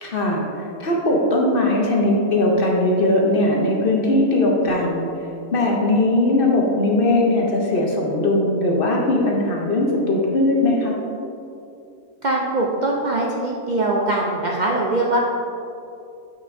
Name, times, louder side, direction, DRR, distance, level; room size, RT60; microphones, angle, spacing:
voice 1, 0.0-5.1 5.5-11.0, left 1 dB, 50° left, -1 dB, 0.8 m, -19 dB
voice 2, 12.2-15.2, right 2 dB, 90° right, -2 dB, 0.4 m, -22 dB
8.3 x 5.7 x 2.6 m, 2.6 s
omnidirectional pair, 1.5 m